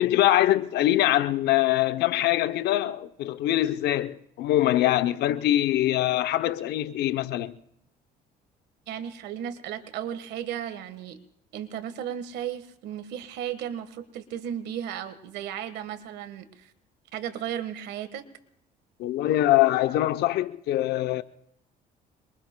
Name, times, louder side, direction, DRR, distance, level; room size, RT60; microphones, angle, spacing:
voice 1, 0.0-7.6 19.0-21.2, left 14 dB, 75° left, 0.7 m, -23 dB
voice 2, 8.9-11.2 11.5-16.7 17.1-18.2, right 10 dB, 85° right, 1.4 m, -35 dB
27.0 x 23.0 x 2.2 m
cardioid pair, 110°, 17 cm